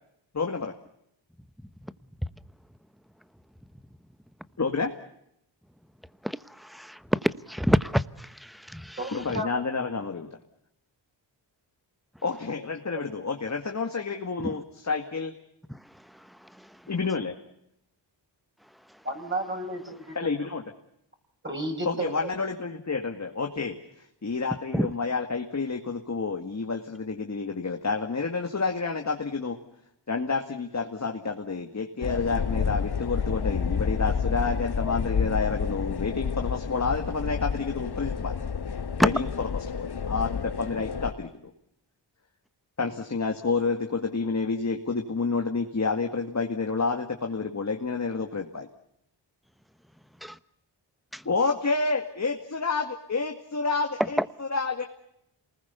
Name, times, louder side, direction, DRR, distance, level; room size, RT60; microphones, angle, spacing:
voice 1, 0.3-0.7 4.6-4.9 9.1-10.3 12.2-15.3 16.9-17.3 20.2-20.6 21.9-23.8 24.2-29.6 30.1-38.4 39.0-41.5 42.8-48.7 51.3-54.9, left 4 dB, 35° left, 3 dB, 2.1 m, -29 dB
voice 2, 6.2-9.0 24.7-24.9 39.0-39.1 50.2-50.4 51.1-51.2 54.2-54.3, equal, ahead, 14 dB, 1.0 m, -26 dB
voice 3, 9.0-9.5 12.9-13.0 19.0-20.3 21.4-22.3, right 1 dB, 25° right, 1 dB, 6.7 m, -33 dB
sound 1, 32.0-41.1, left 6 dB, 60° left, 1.3 m, -30 dB
28.0 x 20.0 x 6.9 m, 0.77 s
wide cardioid pair, 85°, 45 cm